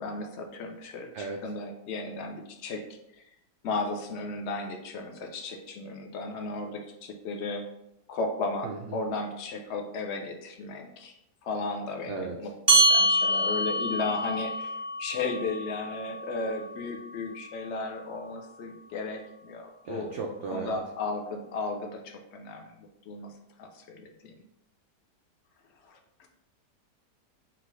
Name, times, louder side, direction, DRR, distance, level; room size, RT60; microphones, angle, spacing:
voice 1, 0.0-2.8 3.2-3.3 3.6-7.6 8.1-11.1 11.4-20.1 20.5-23.3 23.6-24.3 25.8-26.0, left 3 dB, 70° left, 3 dB, 0.6 m, -35 dB
voice 2, 8.6-9.0 12.1-12.4 19.8-20.8, right 4 dB, 85° right, 1 dB, 0.6 m, -35 dB
sound 1, 12.7-17.5, right 1 dB, 35° right, 0.4 m, -26 dB
5.9 x 2.4 x 3.1 m, 0.83 s
omnidirectional pair, 1.8 m